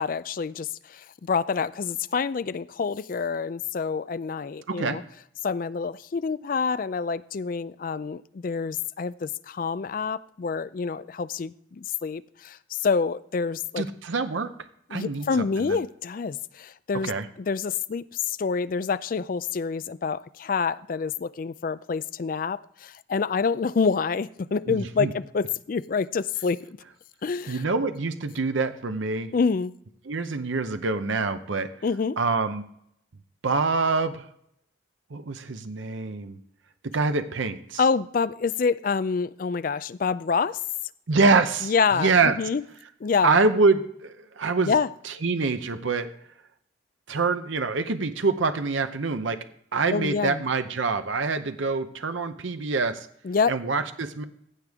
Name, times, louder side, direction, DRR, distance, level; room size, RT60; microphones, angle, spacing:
voice 1, 0.0-5.0 5.4-13.8 14.9-17.1 17.4-26.8 27.2-27.6 29.3-29.7 31.8-32.2 37.8-40.6 41.6-42.6 43.0-43.4 44.6-44.9 49.9-50.4 53.2-53.6, left 5 dB, 45° left, 16 dB, 0.3 m, -27 dB
voice 2, 4.7-5.0 13.8-14.5 14.9-15.8 17.0-17.3 24.7-25.1 27.5-29.3 30.1-31.7 32.2-32.6 33.4-34.3 35.1-36.4 36.8-37.8 41.1-42.4 43.2-44.7 45.0-46.1 47.1-49.4 49.7-53.1 53.5-54.2, right 4 dB, 75° right, 9 dB, 0.7 m, -25 dB
15.5 x 6.7 x 3.5 m, 0.69 s
head